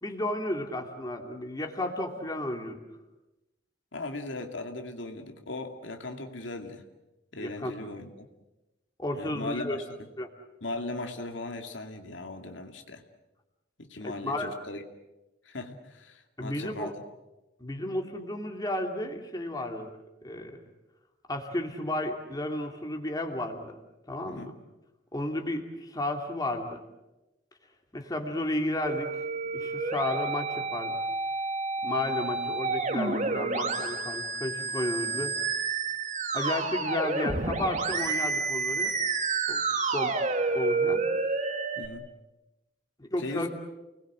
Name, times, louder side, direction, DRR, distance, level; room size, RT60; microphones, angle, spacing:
voice 1, 0.0-2.8 7.4-7.7 9.0-9.8 10.2-10.3 14.0-14.5 16.4-16.9 17.6-20.0 20.2-20.6 21.3-23.8 24.1-24.5 25.1-26.8 27.9-29.1 29.5-31.0 31.8-35.3 36.3-38.9 39.5-39.6 39.9-40.1 40.5-41.0 43.0-43.5, left 1 dB, 20° left, 3 dB, 2.7 m, -33 dB
voice 2, 3.9-6.8 7.3-8.3 9.1-10.1 10.6-13.0 13.8-14.8 15.4-16.9 24.3-24.5 35.1-35.3 41.8-42.1 43.2-43.5, left 2 dB, 90° left, 4 dB, 2.5 m, -38 dB
Musical instrument, 28.8-41.9, right 3 dB, 40° right, 2.2 m, -30 dB
29.5 x 20.5 x 7.7 m, 1.0 s
head